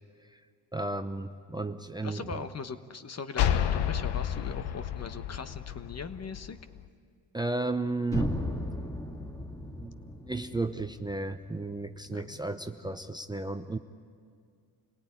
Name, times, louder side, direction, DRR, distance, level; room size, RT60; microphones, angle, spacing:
voice 1, 0.7-2.4 7.3-8.3 9.8-13.8, right 2 dB, 10° right, 8 dB, 0.8 m, -34 dB
voice 2, 2.0-6.6 12.1-12.9, left 5 dB, 35° left, 11 dB, 1.3 m, -41 dB
sound 1, 3.4-6.9, left 10 dB, 65° left, 1.2 m, -30 dB
sound 2, 8.1-12.1, equal, 10° left, 2.4 m, -36 dB
27.0 x 17.5 x 9.8 m, 2.1 s
supercardioid pair, 70°, 43 cm